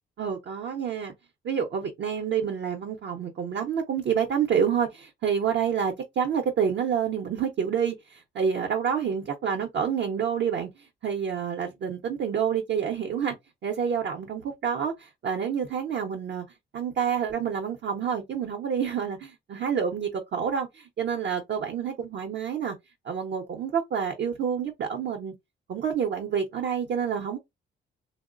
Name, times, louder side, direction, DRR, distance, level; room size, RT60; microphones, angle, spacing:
voice 1, 0.2-1.1 1.4-10.7 11.0-13.3 13.6-16.4 16.7-22.7 23.0-25.3 25.7-27.4, right 7 dB, 60° right, 0.7 m, -28 dB
3.0 x 2.0 x 2.4 m
cardioid pair, 90°, 20 cm